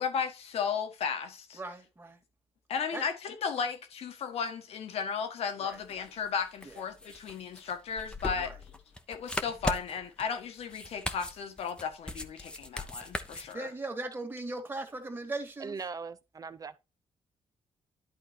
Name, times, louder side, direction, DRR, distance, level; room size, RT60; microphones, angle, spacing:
voice 1, 0.0-1.6 2.7-8.5 9.1-13.7, left 6 dB, 75° left, 1.6 m, -35 dB
voice 2, 1.5-2.2 2.9-3.0 5.6-5.8 6.6-6.7 8.4-8.6 13.5-15.8, right 2 dB, 20° right, 2.1 m, -38 dB
sound 1, 5.7-13.5, left 2 dB, 10° left, 0.9 m, -39 dB
voice 3, 15.6-16.8, right 5 dB, 35° right, 0.7 m, -40 dB
11.0 x 3.9 x 4.5 m
cardioid pair, 90°, 11 cm